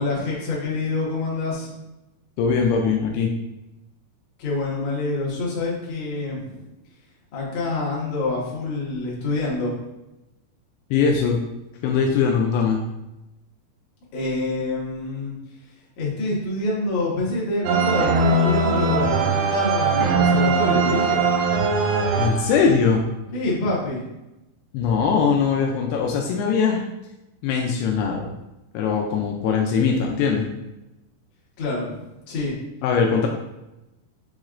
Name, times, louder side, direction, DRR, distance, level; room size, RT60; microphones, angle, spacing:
voice 1, 0.0-1.7 4.4-6.7 7.3-9.8 14.1-15.4 16.0-21.2 23.3-24.0 31.6-32.6, left 2 dB, 60° left, -5 dB, 2.1 m, -26 dB
voice 2, 2.4-3.3 10.9-11.4 11.8-12.8 22.2-23.0 24.7-26.8 27.4-28.3 28.7-30.5 32.8-33.3, left 6 dB, 85° left, 0 dB, 2.5 m, -21 dB
sound 1, 17.7-22.9, right 3 dB, 85° right, 2.2 m, -21 dB
7.1 x 3.1 x 2.4 m, 0.96 s
omnidirectional pair, 4.6 m